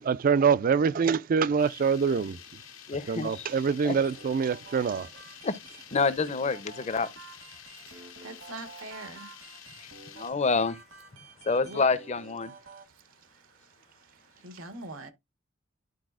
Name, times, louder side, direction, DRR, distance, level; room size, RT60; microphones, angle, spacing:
voice 1, 0.0-2.4 3.1-5.1, right 6 dB, 45° right, 0.3 m, -25 dB
sound 1, 1.6-10.3, left 9 dB, 85° left, 1.6 m, -49 dB
voice 2, 2.9-3.5 3.8-4.0 5.4-5.6 5.9-7.1 10.1-10.8 11.4-12.5, left 4 dB, 35° left, 0.6 m, -27 dB
sound 2, 3.8-12.9, right 4 dB, 70° right, 1.2 m, -50 dB
voice 3, 8.2-9.3 11.6-11.8 14.4-15.1, right 2 dB, 85° right, 1.3 m, -42 dB
12.0 x 4.1 x 2.4 m
head